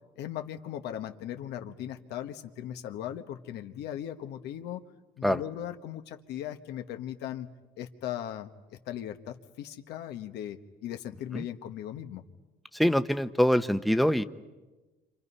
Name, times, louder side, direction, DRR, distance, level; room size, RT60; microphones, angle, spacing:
voice 1, 0.2-4.8 5.2-7.5 7.8-12.2, left 11 dB, 80° left, 6 dB, 1.4 m, -38 dB
voice 2, 12.7-14.2, equal, ahead, 10 dB, 0.9 m, -24 dB
29.5 x 27.0 x 5.6 m, 1.2 s
cardioid pair, 110°, 17 cm